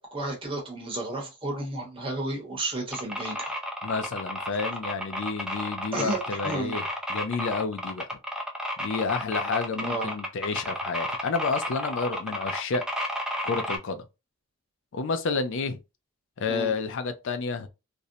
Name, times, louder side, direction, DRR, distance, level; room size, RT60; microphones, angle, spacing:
voice 1, 0.0-3.5 5.9-6.7 9.8-10.1 16.5-16.7, right 2 dB, 25° right, 0.9 m, -32 dB
sound 1, 2.9-13.8, equal, 5° right, 0.4 m, -32 dB
voice 2, 3.8-8.2 8.8-12.8 13.4-14.1 14.9-15.8 16.4-17.7, left 4 dB, 60° left, 0.4 m, -30 dB
2.6 x 2.1 x 2.6 m
head